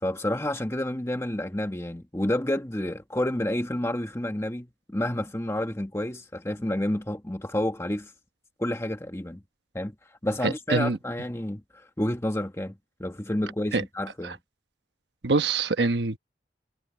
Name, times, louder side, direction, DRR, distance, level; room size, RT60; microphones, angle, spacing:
voice 1, 0.0-8.1 8.6-9.4 9.7-9.9 10.2-14.4, left 1 dB, 15° left, 1.2 m, -29 dB
voice 2, 10.4-11.0 13.7-13.8 14.2-14.3 15.2-16.2, right 3 dB, 80° right, 1.2 m, -24 dB
head